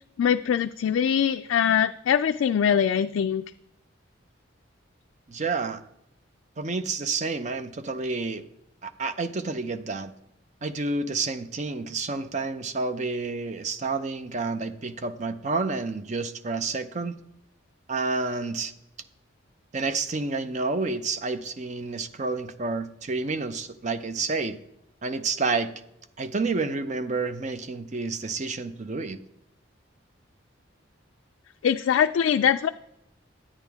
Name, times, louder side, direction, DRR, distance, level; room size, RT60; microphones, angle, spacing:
voice 1, 0.2-3.4 31.6-32.7, left 8 dB, 85° left, 7 dB, 0.3 m, -22 dB
voice 2, 5.3-5.8 6.6-8.4 8.8-10.1 10.6-17.1 17.9-18.7 19.7-24.6 25.0-25.7 26.2-29.2, right 3 dB, 35° right, 11 dB, 0.5 m, -29 dB
9.9 x 8.8 x 3.5 m, 0.82 s
head